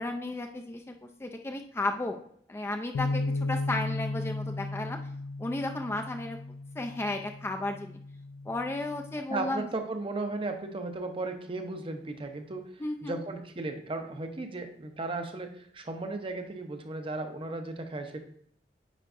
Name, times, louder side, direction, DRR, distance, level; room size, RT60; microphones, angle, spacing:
voice 1, 0.0-2.2 2.5-5.0 5.4-8.0 8.5-9.7 12.8-13.2, left 2 dB, 15° left, 4 dB, 0.4 m, -34 dB
sound 1, 2.9-9.2, left 2 dB, 90° left, 0.3 m, -35 dB
voice 2, 9.3-18.2, right 2 dB, 30° right, 6 dB, 0.7 m, -35 dB
9.1 x 4.5 x 2.5 m, 0.65 s
head